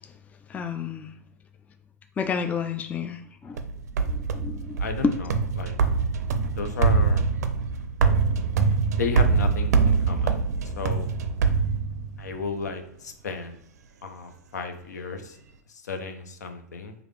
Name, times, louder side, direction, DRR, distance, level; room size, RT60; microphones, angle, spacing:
voice 1, 0.5-1.1 2.2-3.6 4.1-5.1, left 5 dB, 15° left, 7 dB, 0.3 m, -30 dB
sound 1, 3.6-12.4, right 5 dB, 65° right, 0.4 m, -24 dB
voice 2, 4.8-5.7 6.6-7.2 8.9-10.4 10.8-11.1 12.2-13.6 14.0-15.4 15.7-16.9, left 4 dB, 75° left, 6 dB, 0.6 m, -33 dB
4.8 x 2.5 x 3.2 m, 0.72 s
figure-of-eight pair, 95°, 9 cm